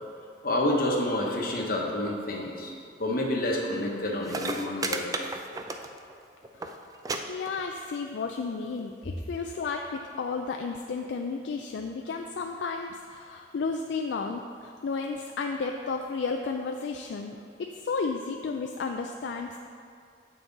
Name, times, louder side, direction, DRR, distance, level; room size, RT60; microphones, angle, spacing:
voice 1, 0.4-2.7 3.0-5.0, left 1 dB, 55° left, -1 dB, 1.0 m, -28 dB
sound 1, 4.0-4.1 4.2-6.2 6.4-6.7 7.0-7.2 7.5-8.0 8.8-8.9, right 3 dB, 20° right, 0.4 m, -33 dB
voice 2, 6.5-6.8 7.3-19.6, left 4 dB, 75° left, 3 dB, 0.4 m, -33 dB
7.6 x 5.8 x 3.9 m, 2.3 s
head